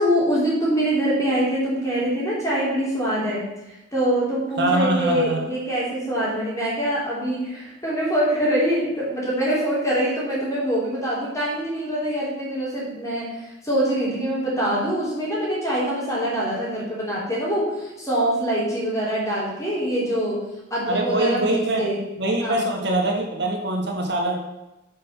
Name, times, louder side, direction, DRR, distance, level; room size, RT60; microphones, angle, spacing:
voice 1, 0.0-3.5 3.9-20.4 20.7-22.0 22.4-22.6, right 1 dB, 15° left, -6 dB, 3.4 m, -24 dB
voice 2, 4.6-5.4 20.9-21.8 22.2-24.4, right 1 dB, 60° right, 1 dB, 1.6 m, -23 dB
9.6 x 5.5 x 5.9 m, 0.99 s
head